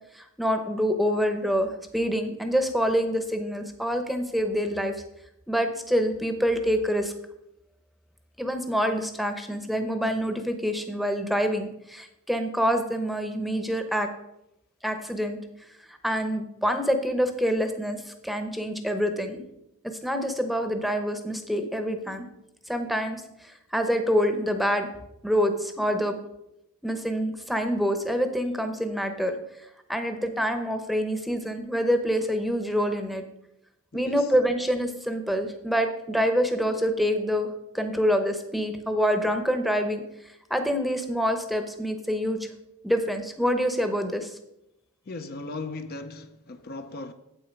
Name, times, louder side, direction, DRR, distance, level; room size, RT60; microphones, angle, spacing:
voice 1, 0.1-4.9 5.5-7.1 8.4-14.1 14.8-15.4 15.9-19.4 19.8-22.3 22.7-24.9 25.2-26.2 26.8-29.4 29.9-33.2 33.9-37.5 37.7-40.0 40.5-42.4 42.8-44.4, equal, ahead, 0.8 m, -26 dB
voice 2, 33.9-34.3 45.1-47.1, left 3 dB, 45° left, 0.5 m, -37 dB
8.8 x 7.9 x 5.2 m
head